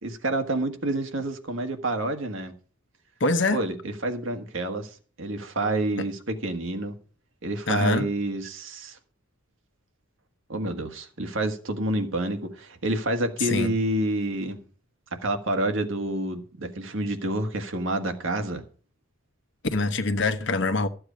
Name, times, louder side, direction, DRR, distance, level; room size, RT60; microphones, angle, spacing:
voice 1, 0.0-2.5 3.5-6.9 7.4-9.0 10.5-14.6 15.1-18.6, right 1 dB, 70° right, 1.6 m, -28 dB
voice 2, 3.2-3.6 7.7-8.1 13.4-13.7 19.7-20.9, left 3 dB, 60° left, 1.0 m, -24 dB
13.5 x 7.8 x 5.1 m
head